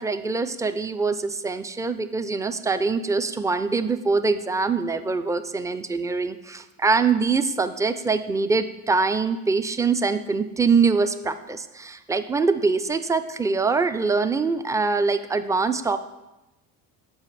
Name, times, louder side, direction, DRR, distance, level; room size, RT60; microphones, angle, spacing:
voice 1, 0.0-16.0, right 4 dB, 10° right, 11 dB, 0.3 m, -24 dB
7.1 x 5.1 x 4.1 m, 1.0 s
hypercardioid pair, 65°, 46 cm